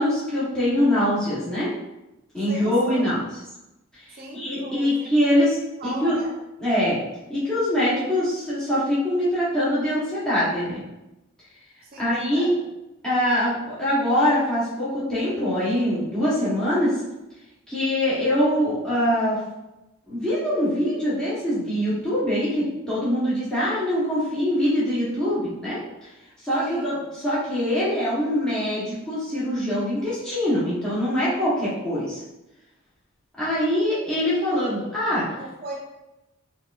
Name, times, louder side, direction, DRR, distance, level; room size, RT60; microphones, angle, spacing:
voice 1, 0.0-1.7 2.3-3.2 3.9-5.6 5.8-6.2 6.6-7.0 7.3-10.8 12.0-12.5 13.0-16.9 17.7-19.4 20.1-25.8 26.4-32.2 33.4-35.3, equal, 5° left, -11 dB, 0.9 m, -23 dB
voice 2, 2.4-3.2 4.1-5.4 5.8-6.4 11.8-12.6 18.1-18.3 26.6-27.0 35.4-35.8, right 1 dB, 45° right, -1 dB, 0.5 m, -37 dB
5.4 x 2.3 x 2.4 m, 0.97 s
head